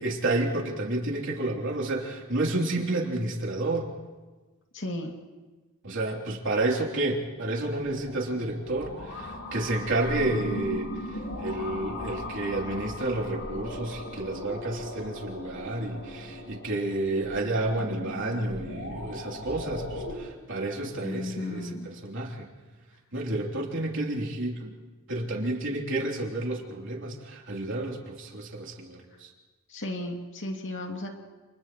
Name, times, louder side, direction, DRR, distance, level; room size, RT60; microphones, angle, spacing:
voice 1, 0.0-3.9 5.8-22.5 23.1-24.7 25.1-29.3, right 2 dB, 60° right, -1 dB, 3.4 m, -30 dB
voice 2, 4.7-5.1 21.0-21.9 29.1-29.2 29.7-31.2, left 1 dB, 60° left, 1 dB, 2.5 m, -34 dB
sound 1, 7.6-20.2, left 1 dB, 85° left, 5.0 m, -38 dB
29.5 x 29.5 x 3.1 m, 1.2 s
head